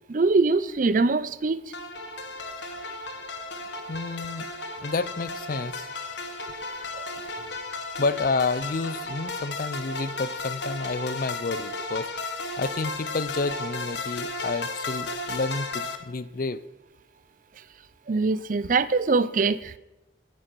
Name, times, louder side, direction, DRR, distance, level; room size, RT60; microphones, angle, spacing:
voice 1, 0.1-1.6 18.1-19.8, right 3 dB, 45° right, 16 dB, 0.5 m, -23 dB
sound 1, 1.7-16.0, left 2 dB, 65° left, 1.3 m, -34 dB
voice 2, 3.9-4.5 4.8-5.9 8.0-12.1 12.6-16.6, left 3 dB, 50° left, 16 dB, 0.5 m, -30 dB
9.7 x 9.7 x 6.1 m, 0.95 s
head